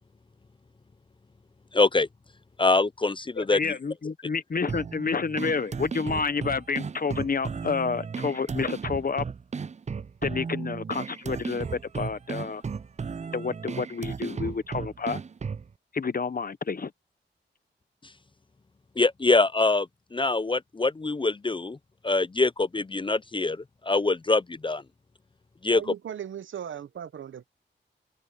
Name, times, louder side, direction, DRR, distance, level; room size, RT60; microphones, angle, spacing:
voice 1, 1.7-2.1 2.6-3.8 19.0-19.9 20.1-21.8 22.0-24.8 25.6-25.8, left 3 dB, 25° left, 0.6 m, -24 dB
voice 2, 3.4-9.2 10.2-12.6 13.3-15.2 15.9-16.9, left 5 dB, 45° left, 1.1 m, -29 dB
sound 1, 4.7-15.7, right 5 dB, 35° right, 0.5 m, -35 dB
voice 3, 25.7-27.5, right 9 dB, 75° right, 0.9 m, -38 dB
cardioid pair, 50°, 20 cm